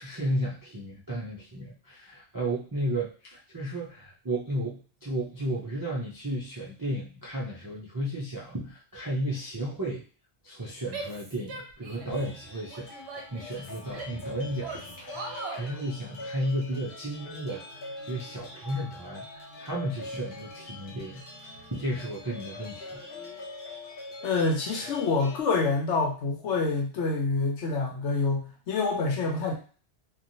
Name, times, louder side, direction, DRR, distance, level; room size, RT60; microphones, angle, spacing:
voice 1, 0.0-10.0 10.4-21.2 21.7-23.0, right 1 dB, 35° right, -5 dB, 0.3 m, -33 dB
Female speech woman speaking / Yell, 10.9-12.2 12.7-14.2 14.6-15.7, right 4 dB, 65° right, 1.0 m, -40 dB
sound 1, 12.0-25.4, left 2 dB, 55° left, 0.8 m, -43 dB
voice 2, 24.2-29.5, left 3 dB, 75° left, 1 dB, 1.1 m, -27 dB
3.0 x 2.4 x 2.6 m, 0.39 s
omnidirectional pair, 1.2 m